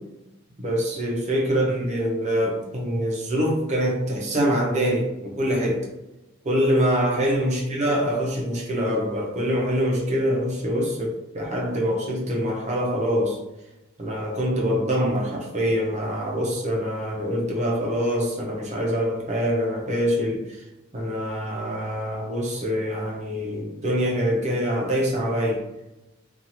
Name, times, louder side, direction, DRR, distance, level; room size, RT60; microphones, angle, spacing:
voice 1, 0.6-5.8 6.4-13.4 14.0-20.6 20.9-25.6, equal, 35° right, -2 dB, 0.6 m, -24 dB
2.7 x 2.4 x 2.8 m, 0.95 s
head